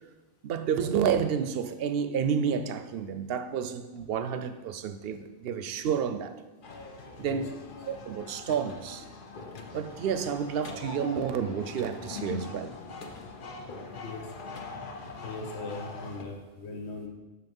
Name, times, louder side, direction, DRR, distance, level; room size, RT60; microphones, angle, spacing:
voice 1, 0.4-6.4 7.2-7.4 7.9-9.0 9.7-12.8, right 7 dB, 70° right, 0.8 m, -30 dB
sound 1, 6.6-16.2, left 4 dB, 55° left, 0.9 m, -42 dB
voice 2, 13.9-14.3 15.2-17.1, left 3 dB, 80° left, 1.2 m, -40 dB
6.3 x 5.8 x 5.3 m
omnidirectional pair, 1.1 m